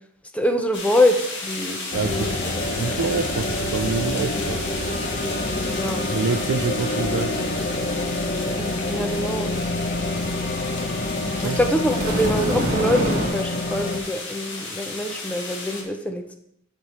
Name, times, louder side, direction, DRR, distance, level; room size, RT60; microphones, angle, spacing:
voice 1, 0.3-1.2 1.4-1.8 2.1-2.3 5.7-6.0 8.6-9.5 11.4-16.2, left 1 dB, 5° left, 0.7 m, -24 dB
sound 1, 0.7-15.8, left 3 dB, 60° left, 1.8 m, -33 dB
sound 2, 1.9-14.0, left 2 dB, 40° left, 0.9 m, -27 dB
voice 2, 1.9-2.4 2.8-4.7 6.1-7.5 11.2-11.6, right 5 dB, 85° right, 0.4 m, -27 dB
sound 3, 11.4-13.3, right 1 dB, 40° right, 1.7 m, -26 dB
9.4 x 5.4 x 4.3 m
head